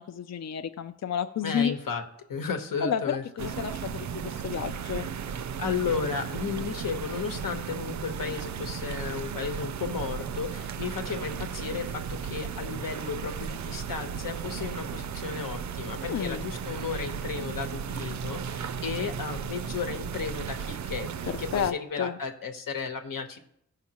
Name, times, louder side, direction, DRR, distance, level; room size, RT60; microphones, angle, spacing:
voice 1, 0.0-1.7 2.8-5.1 16.0-16.4 21.2-22.2, left 8 dB, 55° left, 10 dB, 0.4 m, -31 dB
voice 2, 1.4-2.0 2.3-3.7 5.3-23.4, left 5 dB, 85° left, 6 dB, 1.1 m, -34 dB
sound 1, 3.4-21.7, right 7 dB, 60° right, 0.4 m, -35 dB
15.5 x 5.7 x 2.9 m, 0.73 s
wide cardioid pair, 100°, 33 cm